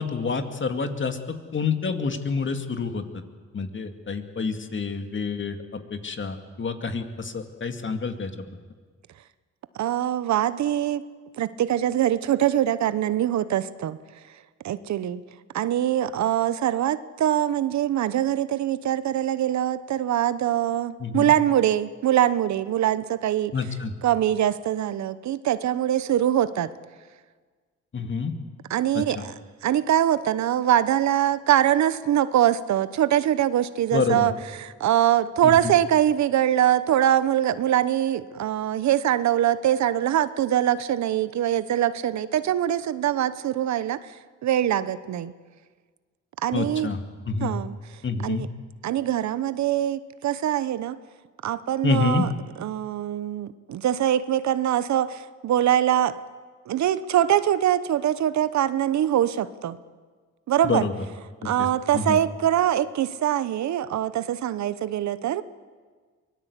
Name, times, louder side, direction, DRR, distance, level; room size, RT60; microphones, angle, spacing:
voice 1, 0.0-3.2 3.5-8.4 21.0-21.3 23.5-23.9 27.9-28.3 28.9-29.2 33.9-34.3 35.4-35.7 46.5-47.5 48.0-48.5 51.8-52.2 60.6-60.9 61.4-61.7 61.9-62.2, left 5 dB, 40° left, 7 dB, 2.4 m, -28 dB
voice 2, 9.8-11.0 11.4-14.0 14.6-15.2 15.5-23.5 24.0-26.7 28.7-29.3 29.6-34.3 34.6-44.0 44.4-45.3 46.4-46.9 47.4-47.7 48.2-48.5 48.8-51.0 51.4-52.3 52.6-56.1 56.7-59.8 60.5-60.8 61.4-65.4, right 11 dB, 70° right, 15 dB, 0.9 m, -23 dB
24.0 x 19.5 x 8.2 m, 1.5 s
cardioid pair, 75°, 29 cm